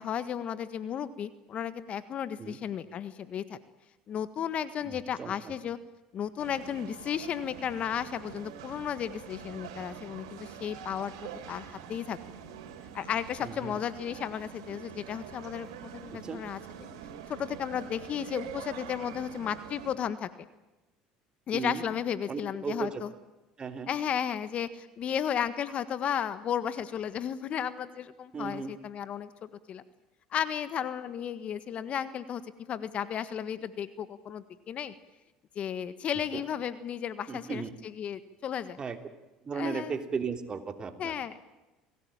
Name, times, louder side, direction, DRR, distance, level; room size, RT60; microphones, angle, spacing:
voice 1, 0.0-3.6 4.1-5.8 6.1-11.1 11.5-12.2 12.9-16.6 17.3-20.5 21.5-23.1 23.9-29.8 30.3-32.4 32.7-34.9 35.5-38.8 39.5-40.0 41.0-41.4, left 9 dB, 50° left, 13 dB, 1.6 m, -34 dB
voice 2, 4.8-5.5 13.4-13.8 16.2-16.4 21.5-21.8 22.3-23.0 23.6-23.9 28.3-28.7 36.3-36.4 37.3-37.7 38.8-39.0 39.4-41.1, right 5 dB, 30° right, 7 dB, 3.1 m, -36 dB
sound 1, 6.4-19.9, right 8 dB, 85° right, 3.8 m, -45 dB
28.0 x 18.5 x 9.0 m, 1.1 s
supercardioid pair, 90°, 3 cm